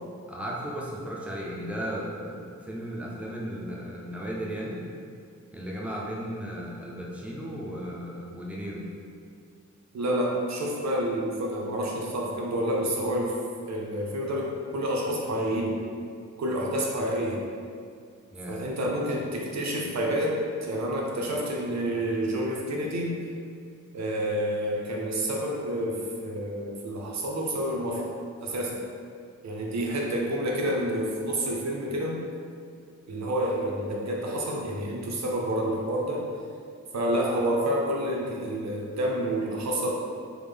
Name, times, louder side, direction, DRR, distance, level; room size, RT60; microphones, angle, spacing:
voice 1, 0.3-4.8 5.5-8.9 18.3-18.7, equal, 5° right, -5 dB, 0.4 m, -35 dB
voice 2, 9.9-13.3 13.7-15.8 16.4-17.4 18.5-23.2 23.9-28.1 28.4-28.8 29.4-32.2 33.1-36.2 36.9-39.9, right 1 dB, 65° right, -1 dB, 0.5 m, -29 dB
3.5 x 2.0 x 3.3 m, 2.3 s
wide cardioid pair, 150°, 30 cm